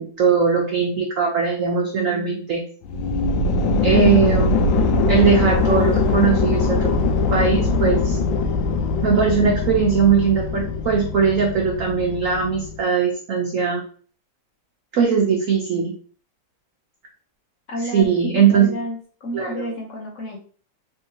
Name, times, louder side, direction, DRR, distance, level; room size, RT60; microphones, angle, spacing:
voice 1, 0.0-2.6 3.8-4.5 5.1-6.9 7.3-8.2 9.0-13.8 14.9-15.9 17.9-18.8 19.3-19.5, right 6 dB, 80° right, 0 dB, 0.7 m, -19 dB
sound 1, 2.8-12.8, left 3 dB, 75° left, 1.3 m, -21 dB
voice 2, 17.7-18.1 18.5-20.4, equal, 50° left, -1 dB, 0.9 m, -30 dB
3.6 x 3.5 x 2.8 m, 0.43 s
omnidirectional pair, 2.2 m